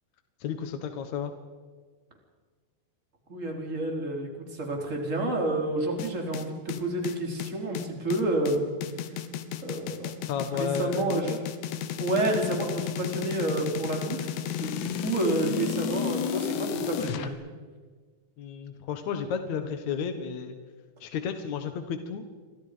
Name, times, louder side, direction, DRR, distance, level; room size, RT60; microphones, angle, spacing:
voice 1, 0.4-1.3 10.3-11.4 18.4-20.6 21.0-22.3, left 7 dB, 60° left, 7 dB, 2.0 m, -32 dB
voice 2, 3.3-8.7 9.1-9.2 9.6-10.1 10.5-11.3 12.0-17.4, right 2 dB, 20° right, 1 dB, 3.8 m, -29 dB
sound 1, 6.0-17.3, left 9 dB, 80° left, 3.5 m, -33 dB
30.0 x 25.0 x 5.1 m, 1.5 s
omnidirectional pair, 5.0 m